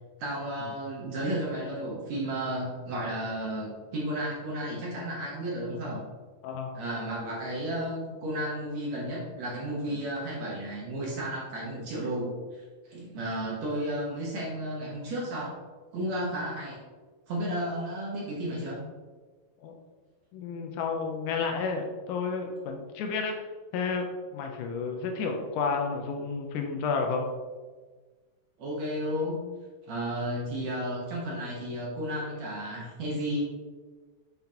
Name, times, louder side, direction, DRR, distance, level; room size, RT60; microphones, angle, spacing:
voice 1, 0.2-6.0 6.7-15.6 15.9-16.8 17.3-18.8 28.6-29.4 29.9-33.4, right 1 dB, 65° right, -4 dB, 1.8 m, -33 dB
voice 2, 20.3-23.3 23.7-24.1 24.3-27.3, left 5 dB, 90° left, 2 dB, 1.8 m, -31 dB
6.8 x 5.8 x 2.8 m, 1.4 s
omnidirectional pair, 4.4 m